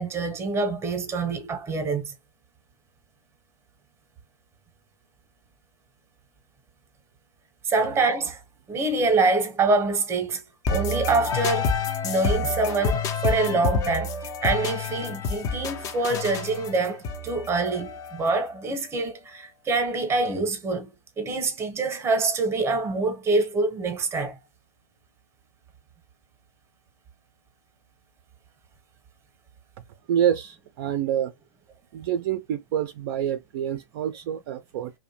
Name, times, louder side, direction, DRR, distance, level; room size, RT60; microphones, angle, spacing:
voice 1, 0.0-2.1 7.6-8.4 8.7-10.4 10.7-14.1 14.4-24.4, right 3 dB, 15° right, 0.8 m, -25 dB
sound 1, 10.6-18.5, left 4 dB, 20° left, 0.4 m, -28 dB
voice 2, 30.1-31.3 31.9-34.9, right 10 dB, 45° right, 0.4 m, -27 dB
2.5 x 2.1 x 2.7 m
hypercardioid pair, 130°, 17 cm